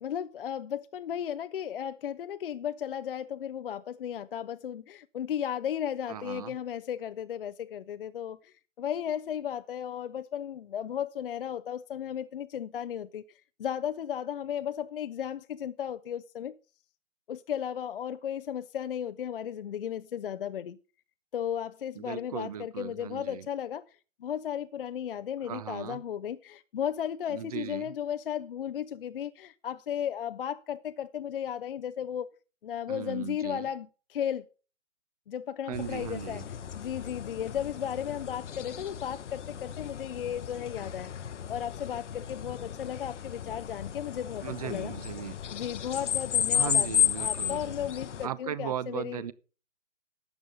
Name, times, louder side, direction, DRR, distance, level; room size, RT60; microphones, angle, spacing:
voice 1, 0.0-13.2 13.6-16.5 17.3-20.8 21.3-23.8 24.2-32.3 32.6-34.5 35.3-36.4 36.7-41.1 41.5-44.9 45.5-46.9 47.2-49.2, left 9 dB, 45° left, 0.6 m, -35 dB
voice 2, 6.1-6.6 22.0-23.5 25.5-26.0 27.3-27.9 32.9-33.7 35.7-36.5 44.4-45.4 46.5-47.7 48.2-49.3, right 10 dB, 30° right, 0.6 m, -37 dB
sound 1, 35.7-48.3, left 9 dB, 65° left, 0.9 m, -33 dB
12.0 x 8.2 x 5.2 m
hypercardioid pair, 145°, 38 cm